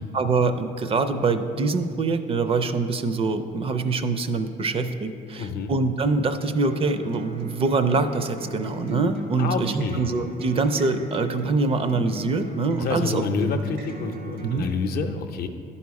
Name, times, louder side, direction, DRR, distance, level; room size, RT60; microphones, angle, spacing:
voice 1, 0.0-13.2 14.4-14.7, right 3 dB, 35° right, 10 dB, 0.4 m, -24 dB
voice 2, 5.4-5.7 9.4-10.0 12.8-15.5, left 4 dB, 65° left, 6 dB, 0.6 m, -28 dB
Acoustic guitar, 6.7-14.6, equal, 80° right, 1.5 m, -38 dB
10.5 x 4.2 x 4.7 m, 2.5 s
cardioid pair, 110°, 17 cm